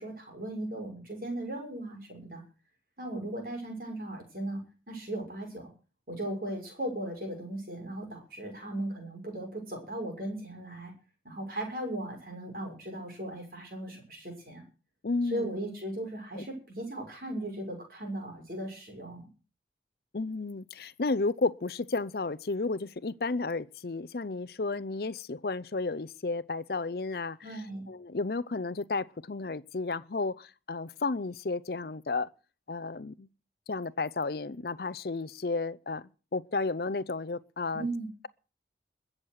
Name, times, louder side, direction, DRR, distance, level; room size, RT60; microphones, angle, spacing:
voice 1, 0.0-2.4 3.0-5.7 6.1-10.9 11.2-14.6 15.3-19.3 27.4-27.9 37.7-38.1, right 1 dB, 50° right, 6.2 m, -37 dB
voice 2, 15.0-15.5 16.3-16.5 20.1-27.4 27.9-32.3 32.7-33.3 33.7-37.9, left 3 dB, 55° left, 0.6 m, -32 dB
21.5 x 7.4 x 6.4 m
head